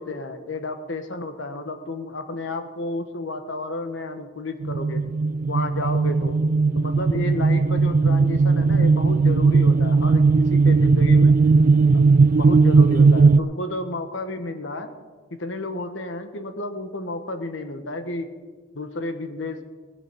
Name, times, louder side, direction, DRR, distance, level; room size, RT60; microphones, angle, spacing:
voice 1, 0.0-5.0 5.5-6.4 6.7-11.4 11.9-12.0 12.3-14.9 15.3-18.3 18.7-19.6, left 2 dB, 70° left, 8 dB, 1.3 m, -31 dB
sound 1, 4.6-13.4, right 4 dB, 45° right, 0.3 m, -17 dB
18.5 x 7.9 x 6.2 m, 1.4 s
head